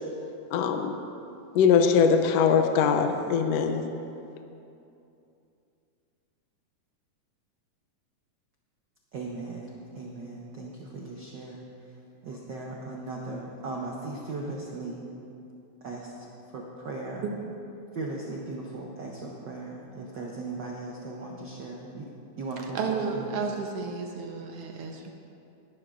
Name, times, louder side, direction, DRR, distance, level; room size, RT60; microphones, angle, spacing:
voice 1, 0.5-0.9 1.5-3.8, left 6 dB, 75° left, 6 dB, 1.6 m, -22 dB
voice 2, 9.1-11.6 12.2-15.1 15.8-16.1 16.5-17.2 17.9-22.1 22.4-23.2, right 3 dB, 85° right, -2 dB, 0.9 m, -37 dB
voice 3, 22.6-25.1, right 5 dB, 65° right, 2 dB, 1.6 m, -32 dB
19.0 x 11.0 x 2.5 m, 2.7 s
omnidirectional pair, 3.4 m